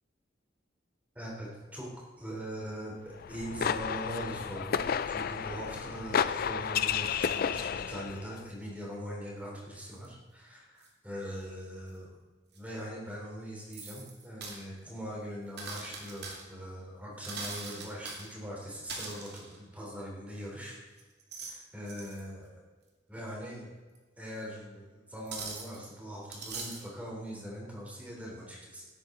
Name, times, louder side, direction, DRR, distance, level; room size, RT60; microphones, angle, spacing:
voice 1, 1.2-1.9 2.2-12.2 12.5-20.8 21.5-22.6 23.1-23.7 24.2-28.9, equal, 10° right, -4 dB, 3.5 m, -41 dB
sound 1, 3.2-8.3, left 7 dB, 50° left, 0.4 m, -32 dB
sound 2, 10.0-10.1 10.8-10.9 12.5-12.6 13.7-14.6 15.6-16.4 17.2-18.3 18.9-19.6 21.0-21.6 21.8-22.2 23.9-24.0 25.3-25.8 26.3-26.9, right 4 dB, 55° right, 2.5 m, -41 dB
17.0 x 8.9 x 3.9 m, 1.3 s
head